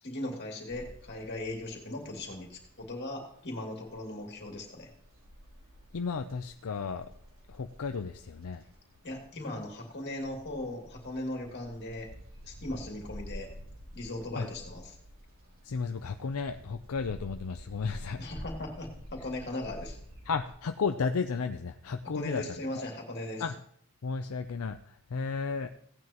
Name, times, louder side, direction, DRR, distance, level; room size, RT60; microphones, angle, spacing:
voice 1, 0.0-4.9 9.0-12.1 12.4-13.5 13.9-15.0 18.2-20.0 22.1-23.4, left 1 dB, 50° left, 0 dB, 2.5 m, -38 dB
sound 1, 0.7-20.5, equal, 65° right, 3.2 m, -50 dB
voice 2, 5.9-7.1 7.5-8.6 14.4-14.5 15.6-18.2 20.3-22.4 22.7-22.8 23.4-23.5 24.0-25.7, left 5 dB, 75° left, 7 dB, 0.5 m, -33 dB
16.5 x 9.4 x 3.0 m, 0.66 s
head